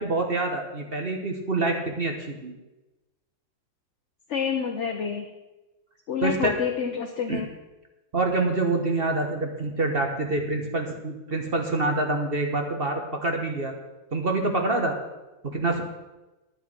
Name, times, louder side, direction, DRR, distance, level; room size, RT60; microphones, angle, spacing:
voice 1, 0.0-2.5 6.2-6.5 7.3-7.4 8.1-13.7 14.1-15.0 15.4-15.8, right 2 dB, 35° right, 3 dB, 1.3 m, -26 dB
voice 2, 4.3-5.2 6.1-7.5, left 7 dB, 50° left, 4 dB, 0.9 m, -28 dB
10.0 x 9.7 x 6.1 m, 1.1 s
omnidirectional pair, 2.0 m